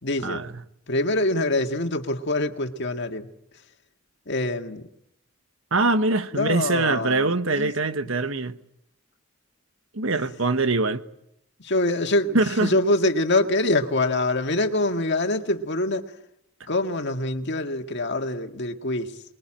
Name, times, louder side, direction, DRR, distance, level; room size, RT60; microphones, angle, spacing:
voice 1, 0.0-0.4 0.9-3.3 4.3-4.9 6.3-7.7 10.1-10.3 11.6-16.1 16.7-19.2, left 2 dB, 55° left, 1.8 m, -25 dB
voice 2, 5.7-8.6 9.9-11.0 12.3-12.7, right 3 dB, 70° right, 1.3 m, -23 dB
26.5 x 21.5 x 8.9 m
head